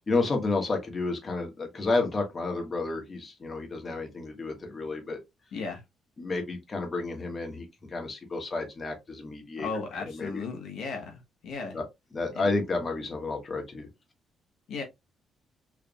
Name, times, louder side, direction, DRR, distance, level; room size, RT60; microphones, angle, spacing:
voice 1, 0.0-5.2 6.2-10.4 11.7-11.8 12.1-13.9, left 3 dB, 35° left, 1.5 m, -31 dB
voice 2, 5.5-5.8 9.6-11.8 12.3-12.5 14.7-14.8, left 4 dB, 75° left, 1.2 m, -35 dB
4.7 x 3.4 x 2.3 m
cardioid pair, 90°, 0 cm